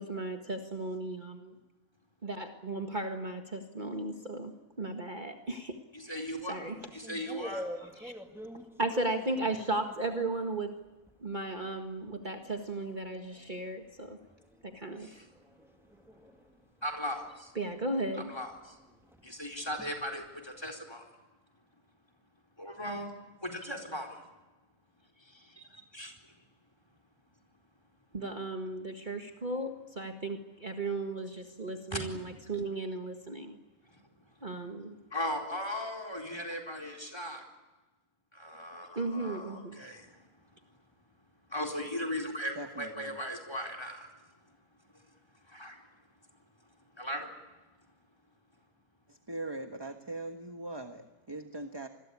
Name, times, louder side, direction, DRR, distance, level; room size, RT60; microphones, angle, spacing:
voice 1, 0.0-1.5 2.2-4.5 4.8-5.8 6.1-6.8 8.0-8.1 8.8-10.8 11.2-14.2 14.6-15.1 17.6-18.3 28.1-33.6 34.4-35.0 39.0-39.8, right 2 dB, 35° right, 4 dB, 1.8 m, -35 dB
voice 2, 5.9-6.5 6.9-7.9 14.9-15.3 16.8-17.5 18.3-18.8 19.2-21.1 22.6-23.1 23.4-24.2 25.2-26.1 31.9-32.0 33.9-34.0 35.1-37.4 38.3-40.2 41.5-44.1 45.5-45.9 47.0-47.3, equal, 15° left, 6 dB, 4.5 m, -38 dB
sound 1, 6.1-11.3 11.7-20.6, equal, ahead, 1.7 m, -48 dB
voice 3, 42.5-43.2 49.1-51.9, right 2 dB, 20° right, 6 dB, 1.3 m, -41 dB
27.0 x 21.5 x 8.6 m, 1.1 s
omnidirectional pair, 1.5 m